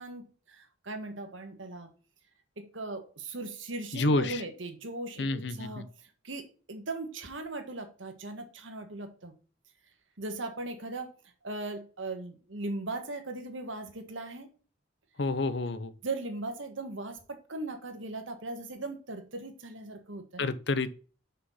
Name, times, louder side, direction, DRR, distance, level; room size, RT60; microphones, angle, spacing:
voice 1, 0.0-1.9 2.6-5.9 6.2-9.3 10.2-11.1 11.4-14.5 16.0-20.5, right 2 dB, 85° right, 1.6 m, -38 dB
voice 2, 3.9-4.4 5.2-5.8 15.2-15.9 20.4-20.9, left 2 dB, 60° left, 0.7 m, -29 dB
6.0 x 5.6 x 5.7 m
head